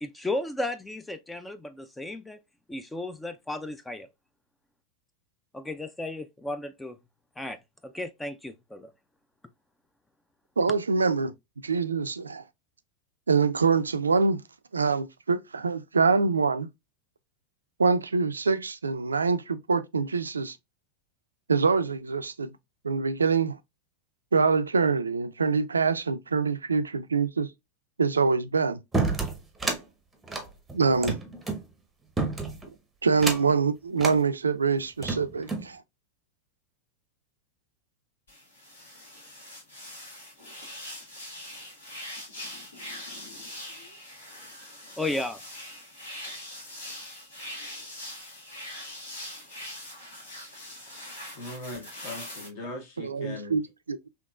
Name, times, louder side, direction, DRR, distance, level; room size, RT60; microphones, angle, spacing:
voice 1, 0.0-2.4 2.7-4.1 5.5-7.0 7.4-8.9 45.0-45.4, left 2 dB, 5° left, 0.3 m, -34 dB
voice 2, 10.6-11.3 11.6-12.4 13.3-14.4 14.7-16.7 17.8-20.6 21.5-22.5 22.8-23.6 24.3-27.5 28.0-28.8 30.7-31.2 33.0-35.8 53.0-54.1, right 4 dB, 75° right, 0.3 m, -25 dB
sound 1, 28.9-29.8 30.2-31.6 32.2-32.7 33.1-33.6 34.0-34.2 34.8-35.7, right 3 dB, 10° right, 0.8 m, -29 dB
sound 2, 38.3-52.5, left 1 dB, 70° left, 1.7 m, -42 dB
voice 3, 51.4-53.6, left 2 dB, 50° left, 1.4 m, -39 dB
3.7 x 2.9 x 2.3 m
figure-of-eight pair, 90°, 0 cm